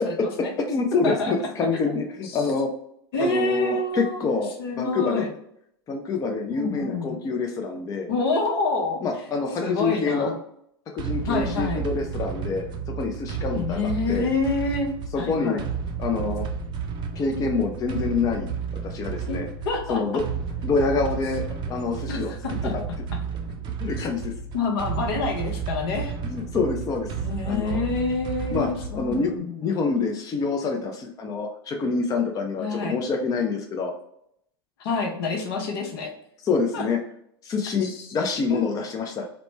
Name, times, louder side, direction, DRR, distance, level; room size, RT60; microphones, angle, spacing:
voice 1, 0.0-0.5 1.0-1.3 2.2-2.5 3.1-4.2 4.6-5.3 6.5-7.2 8.1-9.0 9.6-10.4 11.3-11.9 13.6-14.9 15.2-15.6 19.3-20.0 22.1-22.7 24.0-24.1 24.5-26.2 27.2-29.8 32.6-32.9 34.8-36.1 36.7-36.8 37.8-38.1 38.5-38.7, left 3 dB, 65° left, 2 dB, 0.8 m, -27 dB
voice 2, 0.7-2.7 3.2-5.2 5.9-8.1 9.0-10.3 10.9-12.6 13.0-14.3 15.1-15.6 16.0-16.4 17.2-18.5 18.8-19.5 19.9-20.2 20.6-21.4 21.7-22.8 23.8-24.3 26.2-27.1 27.5-27.8 28.5-28.7 28.9-33.9 36.4-37.0 37.4-39.3, left 4 dB, 25° left, 3 dB, 0.4 m, -26 dB
sound 1, 11.0-29.4, right 6 dB, 35° right, 0.5 m, -32 dB
3.1 x 2.1 x 2.9 m, 0.72 s
hypercardioid pair, 95°, 14 cm